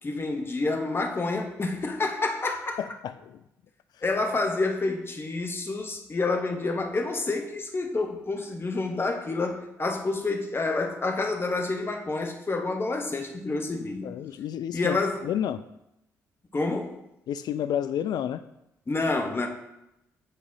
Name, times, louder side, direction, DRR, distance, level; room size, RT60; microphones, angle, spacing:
voice 1, 0.0-2.8 4.0-14.1 14.7-15.2 16.5-17.0 18.9-19.5, left 3 dB, 30° left, 3 dB, 1.2 m, -28 dB
voice 2, 2.8-3.4 14.0-15.6 17.3-18.4, left 10 dB, 55° left, 12 dB, 0.3 m, -30 dB
9.7 x 4.1 x 2.8 m, 0.86 s
hypercardioid pair, 45°, 8 cm